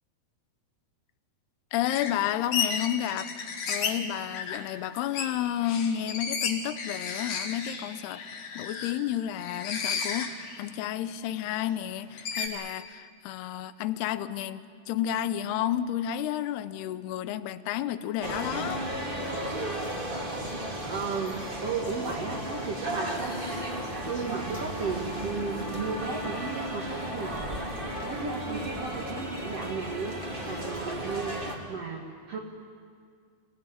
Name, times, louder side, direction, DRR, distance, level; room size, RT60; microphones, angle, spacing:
voice 1, 1.7-18.8, left 11 dB, 85° left, 13 dB, 2.8 m, -31 dB
sound 1, 1.9-4.0 4.3-4.6 5.0-8.9 9.4-10.6 11.0-11.1 12.2-12.5, left 6 dB, 55° left, 3.0 m, -33 dB
sound 2, 18.2-31.5, right 1 dB, 15° right, 2.1 m, -34 dB
voice 2, 20.9-23.3 24.1-27.7 28.0-32.4, right 4 dB, 50° right, 0 dB, 2.1 m, -35 dB
27.0 x 17.0 x 9.8 m, 2.1 s
omnidirectional pair, 4.6 m